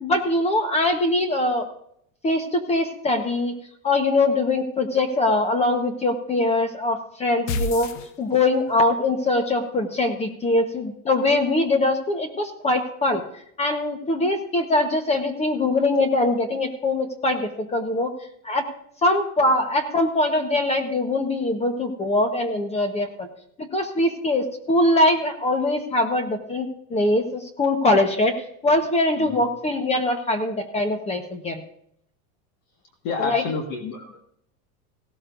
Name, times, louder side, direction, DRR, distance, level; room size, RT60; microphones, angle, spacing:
voice 1, 0.0-1.7 2.2-3.5 3.8-7.9 8.2-13.2 13.6-18.1 18.4-18.7 19.0-23.3 23.6-31.6 33.2-33.4, left 2 dB, 15° left, 7 dB, 1.1 m, -22 dB
sound 1, 7.5-8.7, left 2 dB, 85° left, 1.3 m, -29 dB
voice 2, 33.0-34.2, left 4 dB, 45° left, 3 dB, 1.7 m, -29 dB
16.5 x 13.0 x 2.6 m, 0.69 s
supercardioid pair, 160°, 37 cm